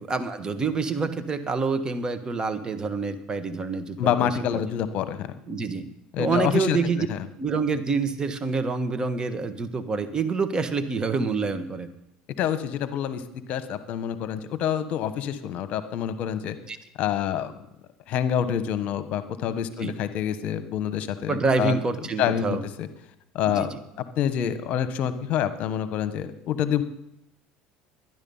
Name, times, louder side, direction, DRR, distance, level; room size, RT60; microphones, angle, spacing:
voice 1, 0.1-4.6 5.5-5.9 6.2-7.1 7.4-11.9 16.7-16.8 19.8-19.9 21.3-22.7 23.5-23.8, right 4 dB, 30° right, 9 dB, 1.3 m, -27 dB
voice 2, 4.0-5.3 6.1-6.8 7.1-7.2 12.4-13.2 13.5-16.6 17.0-17.5 18.1-21.8 22.2-22.9 23.3-23.7 24.0-26.8, left 9 dB, 60° left, 11 dB, 1.1 m, -27 dB
12.5 x 10.5 x 5.5 m, 0.80 s
supercardioid pair, 95°, 3 cm